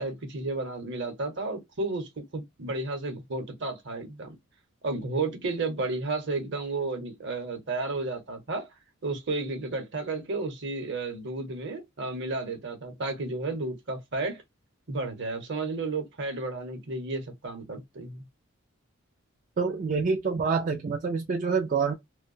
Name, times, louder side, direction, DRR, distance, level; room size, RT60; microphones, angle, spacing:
voice 1, 0.0-4.3 4.8-8.7 9.0-14.4 14.9-18.2, right 3 dB, 55° right, 0.9 m, -32 dB
voice 2, 19.6-21.9, right 5 dB, 40° right, 0.3 m, -27 dB
2.6 x 2.2 x 2.5 m
head